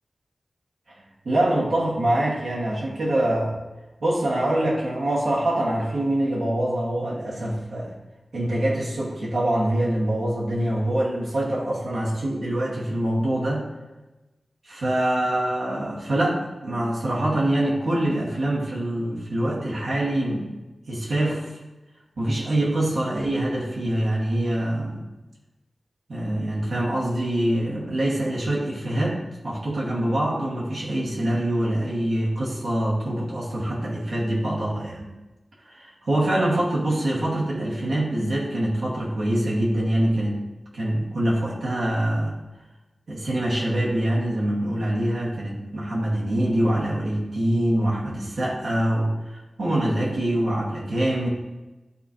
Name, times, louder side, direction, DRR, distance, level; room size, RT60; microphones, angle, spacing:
voice 1, 1.2-3.5 4.0-7.9 8.3-13.6 14.6-20.5 20.9-21.5 22.2-25.0 26.1-35.1 35.7-40.4 40.7-42.3 43.1-51.3, right 1 dB, 80° right, -6 dB, 2.5 m, -24 dB
12.0 x 4.3 x 3.3 m, 1.1 s
wide cardioid pair, 90°, 0 cm